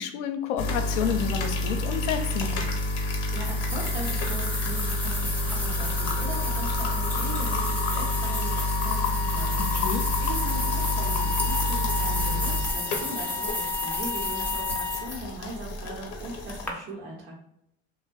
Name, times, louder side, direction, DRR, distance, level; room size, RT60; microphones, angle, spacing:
voice 1, 0.0-2.6 9.6-10.0, left 8 dB, 90° left, 7 dB, 0.5 m, -30 dB
sound 1, 0.6-16.7, left 1 dB, 50° left, 0.6 m, -29 dB
sound 2, 2.4-16.7, left 1 dB, 5° left, 0.4 m, -34 dB
voice 2, 3.3-9.8 10.2-17.4, right 2 dB, 70° right, -2 dB, 1.0 m, -39 dB
Wind instrument woodwind instrument, 5.7-15.1, left 5 dB, 45° right, 0.6 m, -35 dB
2.5 x 2.1 x 2.3 m, 0.76 s
supercardioid pair, 105°, 34 cm